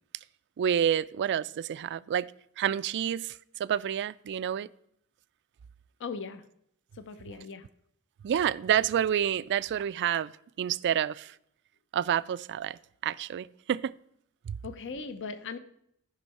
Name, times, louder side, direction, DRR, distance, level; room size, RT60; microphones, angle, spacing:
voice 1, 0.6-2.3 2.6-4.7 8.2-10.3 10.6-11.3 11.9-12.8 13.0-13.9 14.5-14.6, right 9 dB, 50° right, 0.3 m, -28 dB
voice 2, 6.0-6.4 6.9-7.7 14.6-15.6, left 4 dB, 60° left, 0.6 m, -39 dB
14.0 x 5.5 x 4.1 m
head